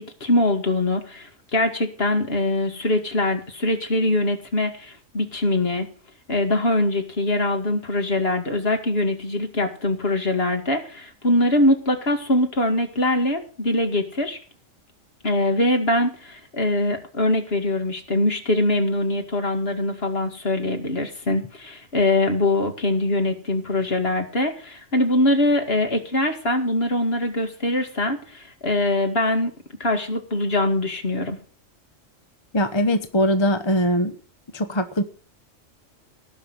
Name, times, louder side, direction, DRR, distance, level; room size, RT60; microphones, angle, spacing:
voice 1, 0.0-5.9 6.3-14.4 15.2-29.5 29.8-31.4, left 1 dB, 50° left, 5 dB, 2.4 m, -23 dB
voice 2, 32.5-34.2 34.5-35.0, equal, 25° left, 8 dB, 0.9 m, -21 dB
18.0 x 6.0 x 8.0 m, 0.41 s
omnidirectional pair, 1.3 m